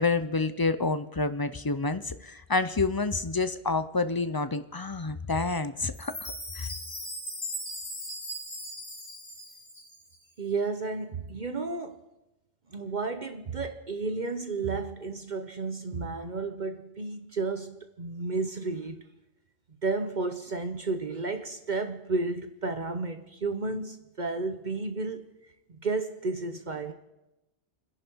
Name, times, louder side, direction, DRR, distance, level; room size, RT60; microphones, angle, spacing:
voice 1, 0.0-6.7, left 3 dB, 30° left, 0.5 m, -28 dB
Chime, 5.9-10.2, equal, 75° left, 3.9 m, -39 dB
voice 2, 10.4-12.0 12.7-19.0 19.8-25.2 25.7-26.9, right 3 dB, 45° right, 0.9 m, -32 dB
28.5 x 11.0 x 4.6 m
omnidirectional pair, 1.1 m